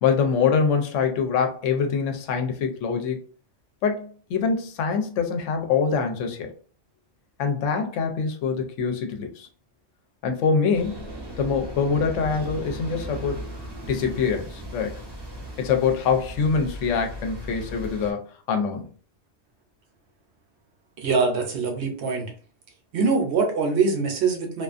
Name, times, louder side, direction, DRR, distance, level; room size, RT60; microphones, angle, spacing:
voice 1, 0.0-3.2 3.8-6.5 7.4-9.5 10.2-11.1 11.4-13.4 13.9-15.0 15.6-18.9, left 5 dB, 80° left, 4 dB, 0.9 m, -24 dB
sound 1, 10.7-18.1, equal, 30° right, 0.5 m, -37 dB
voice 2, 21.0-22.3 22.9-24.6, right 4 dB, 65° right, 2 dB, 0.9 m, -23 dB
2.4 x 2.4 x 2.4 m, 0.41 s
omnidirectional pair, 1.3 m